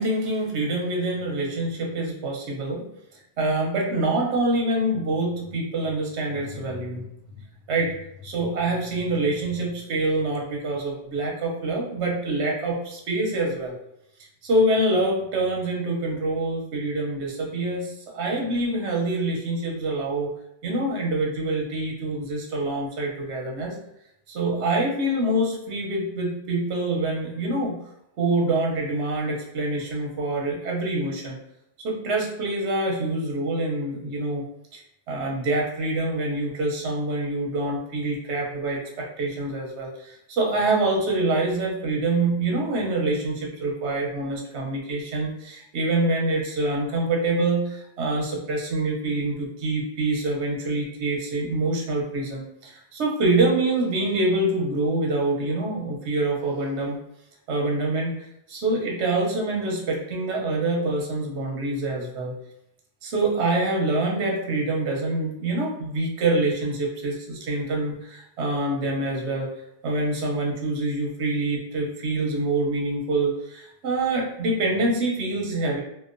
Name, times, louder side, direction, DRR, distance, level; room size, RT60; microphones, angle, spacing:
voice 1, 0.0-2.9 3.4-7.0 7.7-7.9 8.2-13.7 14.4-20.3 20.6-23.7 24.3-27.8 28.2-31.4 31.8-34.5 34.7-34.8 35.1-57.0 57.5-58.1 58.5-62.4 63.0-69.5 69.8-75.8, right 2 dB, 85° right, -1 dB, 1.0 m, -25 dB
2.9 x 2.1 x 2.5 m, 0.78 s
omnidirectional pair, 1.1 m